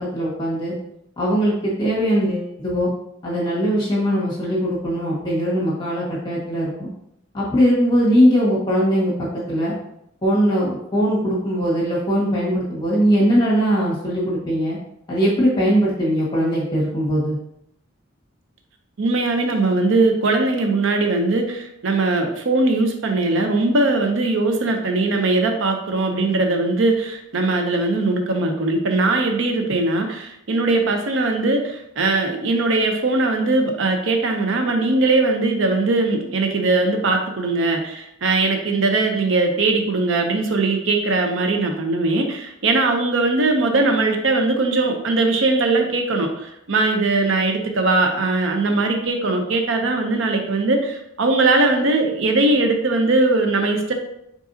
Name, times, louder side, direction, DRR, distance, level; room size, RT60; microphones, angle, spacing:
voice 1, 0.1-0.7 1.2-2.9 3.2-6.9 7.3-9.1 9.5-9.7 10.2-14.8 15.1-17.4, equal, 20° left, -7 dB, 1.6 m, -20 dB
voice 2, 19.0-53.9, right 2 dB, 65° right, 4 dB, 0.6 m, -20 dB
4.8 x 4.0 x 2.7 m, 0.77 s
head